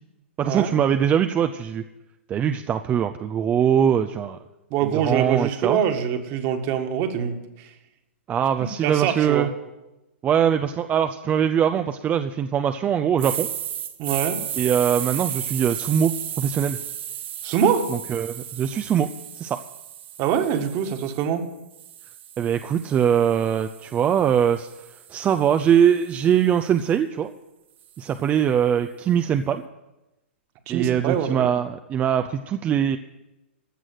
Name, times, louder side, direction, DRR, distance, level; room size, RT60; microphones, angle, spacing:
voice 1, 0.4-1.8 2.3-4.4 4.8-5.8 8.3-9.5 10.2-13.5 14.6-16.8 17.9-19.1 19.4-19.6 22.4-24.7 25.1-27.3 28.0-29.7 30.7-33.0, right 8 dB, 20° right, 8 dB, 0.5 m, -22 dB
voice 2, 4.7-7.7 8.8-9.5 14.0-14.4 17.4-17.9 20.2-21.5 30.7-31.5, right 8 dB, 40° right, 6 dB, 1.7 m, -24 dB
sound 1, 13.2-21.2 21.7-25.9, right 10 dB, 65° right, 1.5 m, -34 dB
15.0 x 6.3 x 9.2 m, 0.98 s
hypercardioid pair, 125°, 7 cm